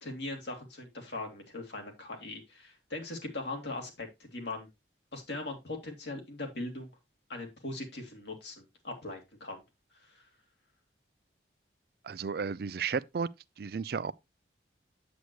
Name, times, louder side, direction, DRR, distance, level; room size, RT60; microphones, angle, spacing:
voice 1, 0.0-4.7 5.1-6.9 7.3-9.6 10.0-10.2, left 2 dB, 70° left, 2.6 m, -40 dB
voice 2, 12.0-13.3 13.6-14.1, right 5 dB, 55° right, 0.4 m, -33 dB
8.1 x 8.0 x 3.0 m
head